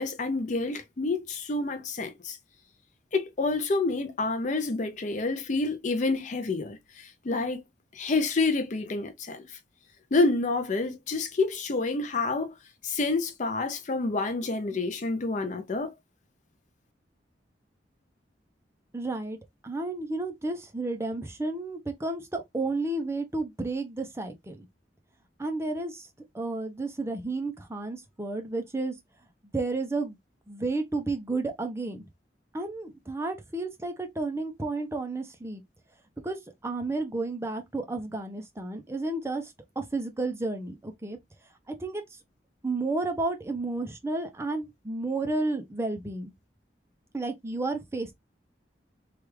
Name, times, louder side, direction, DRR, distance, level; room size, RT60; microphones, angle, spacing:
voice 1, 0.0-2.4 3.1-7.6 7.9-9.6 10.1-12.6 12.8-15.9, left 3 dB, 45° left, 0.5 m, -28 dB
voice 2, 18.9-19.4 19.6-24.7 25.4-26.1 26.3-28.9 29.5-30.2 30.5-32.0 32.5-35.6 36.2-41.2 41.7-42.0 42.6-46.3 47.1-48.1, right 2 dB, 15° right, 0.5 m, -32 dB
3.3 x 2.3 x 3.1 m
head